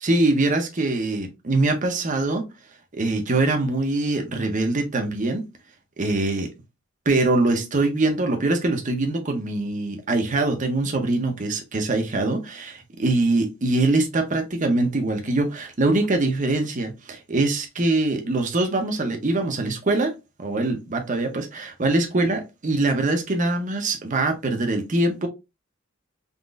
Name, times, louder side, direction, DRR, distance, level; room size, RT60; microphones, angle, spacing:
voice 1, 0.0-2.4 2.9-5.4 6.0-6.5 7.1-20.1 20.4-25.3, right 2 dB, 40° right, 0.7 m, -23 dB
3.9 x 3.0 x 2.4 m
head